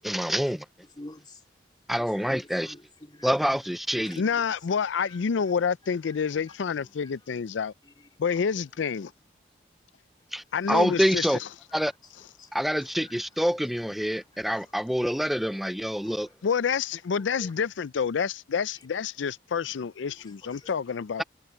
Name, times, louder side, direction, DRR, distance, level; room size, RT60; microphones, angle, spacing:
voice 1, 0.0-0.7 1.9-2.7 3.2-4.2 10.3-11.4 11.7-11.9 12.5-16.3, equal, ahead, 0.3 m, -26 dB
voice 2, 0.8-1.4 2.0-3.4 3.9-4.5 5.0-5.2 6.0-7.1 7.8-8.4 10.2-10.7 11.0-11.1 11.7-12.1 12.4-12.6 13.0-13.4 14.1-14.8 15.7-16.4 17.1-17.5 18.7-18.8 20.1-20.7, left 2 dB, 25° left, 2.5 m, -51 dB
voice 3, 4.2-7.7 8.2-9.1 10.5-11.5 16.4-21.2, left 6 dB, 80° left, 0.4 m, -28 dB
head